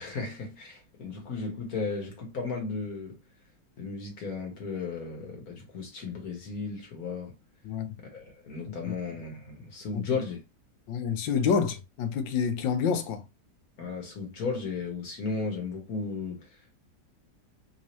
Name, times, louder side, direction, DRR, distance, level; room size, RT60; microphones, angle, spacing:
voice 1, 0.0-3.2 3.8-7.3 8.1-10.4 13.8-16.8, left 4 dB, 55° left, 1.5 m, -35 dB
voice 2, 7.6-8.0 8.7-9.0 9.9-10.2 10.9-13.2, left 6 dB, 90° left, 1.3 m, -28 dB
3.5 x 2.8 x 3.0 m
omnidirectional pair, 1.9 m